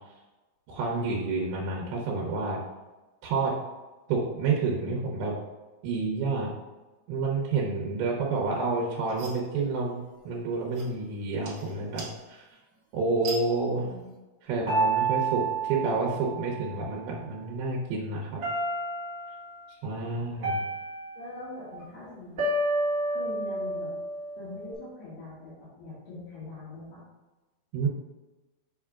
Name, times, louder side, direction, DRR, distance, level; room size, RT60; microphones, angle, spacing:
voice 1, 0.7-2.6 3.2-3.5 4.1-5.4 5.8-6.5 7.1-12.4 12.9-13.9 14.4-18.4 19.8-20.6 27.7-27.9, right 3 dB, 75° right, -2 dB, 2.7 m, -29 dB
sound 1, 8.5-14.2, right 4 dB, 55° right, 2.3 m, -45 dB
voice 2, 13.7-14.1 21.2-22.4 23.1-23.9 24.4-27.0, left 2 dB, 80° left, -8 dB, 3.8 m, -42 dB
sound 2, 14.7-17.0 18.4-19.4 20.4-21.7 22.4-24.7, right 2 dB, 35° right, 1.4 m, -30 dB
7.4 x 5.6 x 2.4 m, 1.1 s
omnidirectional pair, 4.7 m